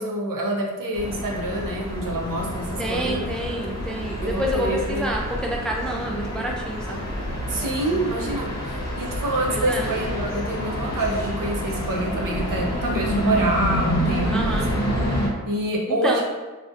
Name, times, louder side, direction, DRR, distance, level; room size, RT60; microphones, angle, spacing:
voice 1, 0.0-3.3 4.2-5.1 7.5-14.8 15.4-16.2, right 1 dB, 75° right, -1 dB, 0.6 m, -26 dB
sound 1, 0.9-15.3, equal, 50° left, 0.7 m, -28 dB
voice 2, 2.8-7.0 9.5-9.9 14.3-14.7 15.9-16.2, equal, ahead, 0 dB, 0.3 m, -28 dB
2.5 x 2.1 x 2.5 m, 1.3 s
cardioid pair, 55°, 33 cm